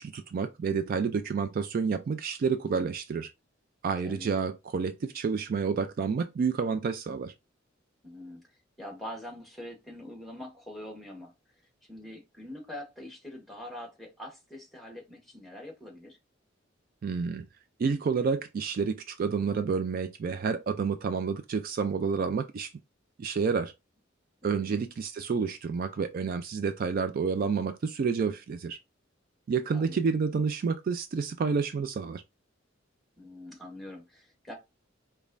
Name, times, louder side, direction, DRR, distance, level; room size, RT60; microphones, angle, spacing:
voice 1, 0.0-3.3 3.8-7.3 17.0-17.5 17.8-22.7 23.2-23.7 24.4-28.8 29.5-32.2, right 5 dB, 50° right, 0.3 m, -29 dB
voice 2, 8.0-8.5 8.8-11.3 11.9-16.2 24.4-24.8 29.7-30.0 33.2-34.5, left 1 dB, ahead, 1.2 m, -44 dB
5.1 x 2.3 x 2.5 m
head